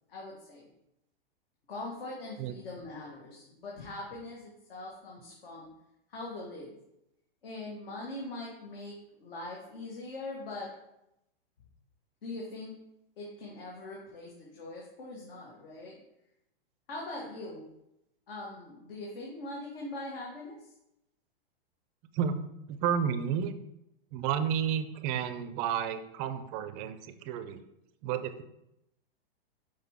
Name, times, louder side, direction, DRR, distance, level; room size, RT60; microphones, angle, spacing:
voice 1, 0.1-0.7 1.7-5.7 6.1-6.7 7.4-10.7 12.2-12.8 13.2-16.0 16.9-17.7 18.3-20.7, left 2 dB, 70° left, -3 dB, 1.7 m, -42 dB
voice 2, 22.7-23.5 24.1-27.6 28.0-28.4, right 8 dB, 30° right, 11 dB, 0.4 m, -31 dB
5.6 x 5.1 x 3.5 m, 0.84 s
hypercardioid pair, 135°, 30 cm